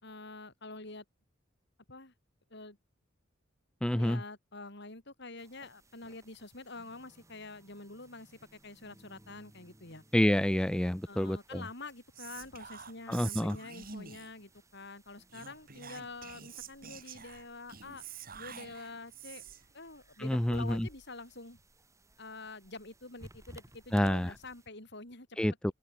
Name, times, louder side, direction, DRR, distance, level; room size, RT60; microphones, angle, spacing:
voice 1, 0.0-1.0 1.9-2.1 2.5-2.8 3.9-10.0 11.1-18.0 18.3-19.4 19.7-21.6 22.2-25.3, left 3 dB, 60° left, 5.9 m, -47 dB
voice 2, 3.8-4.2 10.1-11.6 13.1-13.6 20.2-20.9 23.9-24.3 25.4-25.7, left 1 dB, 5° left, 0.3 m, -28 dB
sound 1, 5.4-24.7, right 1 dB, 15° right, 7.7 m, -60 dB
Whispering, 12.1-14.4 15.3-19.7, right 7 dB, 45° right, 4.7 m, -47 dB
open air
head